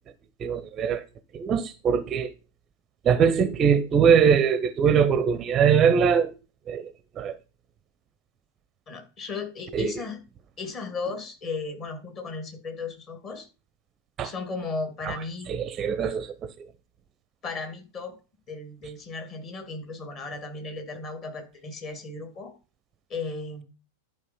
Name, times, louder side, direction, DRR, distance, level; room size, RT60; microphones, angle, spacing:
voice 1, 0.4-1.0 1.3-2.3 3.0-6.3 6.7-6.9 7.2-7.4 9.7-9.9 14.2-14.3 15.0-15.1 15.5-16.5, right 7 dB, 25° right, 0.6 m, -22 dB
voice 2, 8.9-10.2 10.6-13.5 14.2-15.5 17.4-18.2 18.5-22.5 23.1-23.6, left 3 dB, 30° left, 2.4 m, -35 dB
11.0 x 4.8 x 5.4 m
figure-of-eight pair, 90°, 0 cm